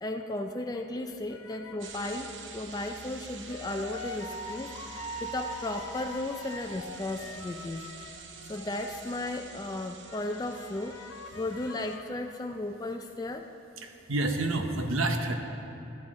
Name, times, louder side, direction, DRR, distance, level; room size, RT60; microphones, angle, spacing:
voice 1, 0.0-7.8 8.5-11.0 11.4-13.5, left 2 dB, 20° left, 4 dB, 0.3 m, -35 dB
sound 1, 1.3-2.5 3.5-9.6 10.0-12.0, left 1 dB, 85° left, 0.6 m, -43 dB
sound 2, 1.8-12.0, right 5 dB, 60° right, 0.7 m, -47 dB
voice 2, 13.8-15.4, right 2 dB, 85° right, 5 dB, 0.9 m, -29 dB
13.0 x 10.5 x 3.7 m, 2.7 s
head